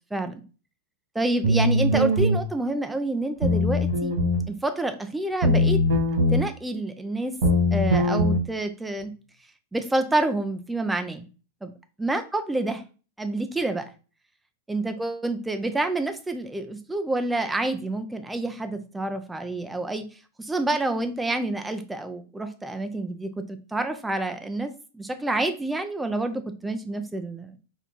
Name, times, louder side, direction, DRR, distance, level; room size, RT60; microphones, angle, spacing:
voice 1, 0.1-0.4 1.2-4.1 4.5-5.8 6.3-7.3 7.7-9.1 9.7-11.3 11.6-11.7 12.0-12.8 13.2-13.9 14.7-20.1 20.4-27.6, right 2 dB, 5° right, 7 dB, 0.3 m, -28 dB
sound 1, 1.4-2.4 3.4-4.4 5.4-6.4 7.4-8.4, left 1 dB, 70° right, 1.5 m, -21 dB
4.4 x 2.2 x 3.9 m, 0.35 s
supercardioid pair, 170°, 0 cm